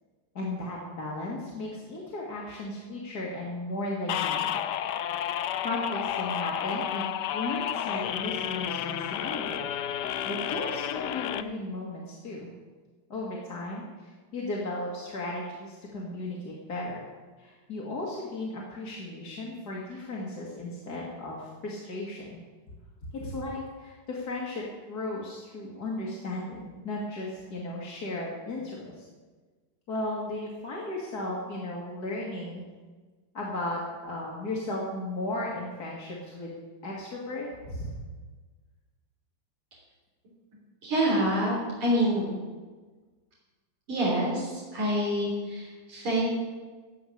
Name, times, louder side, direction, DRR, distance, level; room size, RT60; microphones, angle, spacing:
voice 1, 0.3-4.5 5.6-12.5 13.1-17.0 17.4-22.4 23.1-29.1 29.9-32.6 33.3-36.5 36.8-37.9, left 2 dB, 50° left, -4 dB, 2.5 m, -35 dB
sound 1, 4.1-11.4, left 10 dB, 70° left, 1.1 m, -31 dB
voice 2, 40.8-42.3 43.9-46.3, equal, 85° right, -5 dB, 4.3 m, -27 dB
16.0 x 5.9 x 9.9 m, 1.4 s
omnidirectional pair, 2.3 m